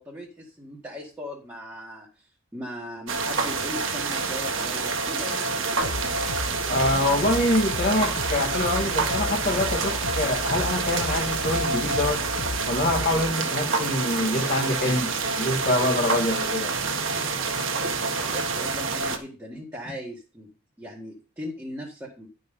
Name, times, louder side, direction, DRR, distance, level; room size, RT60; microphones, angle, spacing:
voice 1, 0.0-5.6 18.2-20.5 20.8-22.3, equal, 10° right, -4 dB, 1.9 m, -39 dB
sound 1, 3.1-19.2, right 4 dB, 60° right, 1.5 m, -27 dB
sound 2, 5.8-13.3, left 3 dB, 70° left, 0.9 m, -34 dB
voice 2, 6.7-12.2 12.7-16.7, left 1 dB, 45° left, 2 dB, 1.9 m, -25 dB
11.5 x 5.6 x 5.4 m, 0.34 s
head